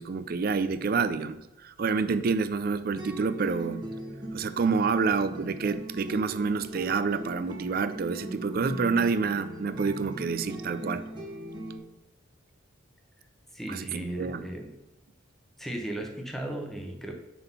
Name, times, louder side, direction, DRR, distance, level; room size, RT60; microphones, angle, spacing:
voice 1, 0.0-3.8 4.3-11.0 13.7-14.5, right 4 dB, 50° right, 12 dB, 0.4 m, -28 dB
sound 1, 3.0-11.8, right 1 dB, 25° right, 1.1 m, -40 dB
voice 2, 13.5-14.7 15.6-17.1, right 1 dB, ahead, 2 dB, 0.9 m, -36 dB
5.9 x 3.7 x 5.5 m, 0.94 s
head